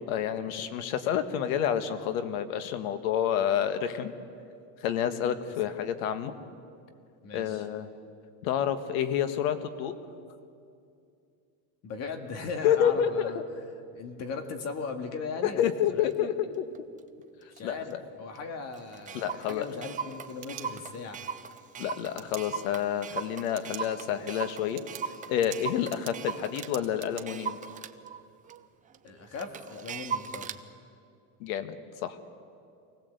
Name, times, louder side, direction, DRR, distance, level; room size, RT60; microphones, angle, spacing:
voice 1, 0.0-4.1 4.8-6.3 7.3-7.9 8.4-9.9 12.6-13.4 15.4-16.7 17.6-18.0 19.1-19.7 21.8-24.8 25.3-27.6 31.4-31.8 32.0-32.2, left 9 dB, 85° left, 11 dB, 1.6 m, -29 dB
voice 2, 7.2-7.7 11.8-13.4 13.9-16.3 17.5-21.2 29.0-30.5, left 4 dB, 40° left, 6 dB, 2.2 m, -38 dB
Clock, 16.1-16.2 16.7-17.0 17.6-17.7 17.9-18.0 18.4-18.5 18.7-26.7 27.2-30.6, right 6 dB, 20° right, 0.6 m, -39 dB
sound 1, 20.2-21.2 22.2-22.4 23.5-23.9 24.3-24.4 24.8-27.2, right 17 dB, 65° right, 1.7 m, -45 dB
24.5 x 18.0 x 8.2 m, 2.5 s
cardioid pair, 150°, 39 cm